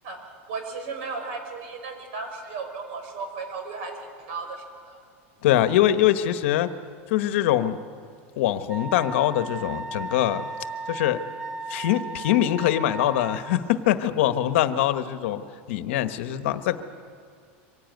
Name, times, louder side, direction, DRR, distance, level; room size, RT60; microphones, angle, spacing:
voice 1, 0.5-3.9 4.3-5.0, right 4 dB, 70° right, 5 dB, 5.3 m, -35 dB
voice 2, 5.4-6.7 7.1-7.8 8.4-10.5 10.9-11.2 11.7-15.4 15.7-16.8, left 12 dB, 70° left, 10 dB, 1.2 m, -23 dB
Wind instrument woodwind instrument, 8.7-13.6, right 3 dB, 10° right, 0.6 m, -36 dB
24.5 x 16.0 x 9.3 m, 2.2 s
supercardioid pair, 160°, 7 cm